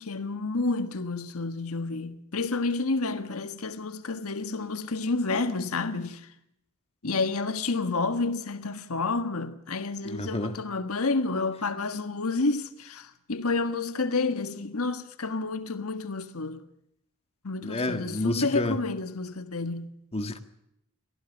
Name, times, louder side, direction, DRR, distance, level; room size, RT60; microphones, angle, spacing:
voice 1, 0.0-6.3 7.0-16.6 17.4-19.9, left 3 dB, 80° left, 1.5 m, -30 dB
voice 2, 10.0-10.6 17.6-18.8 20.1-20.4, left 1 dB, 30° left, 1.8 m, -29 dB
23.5 x 15.5 x 7.2 m
head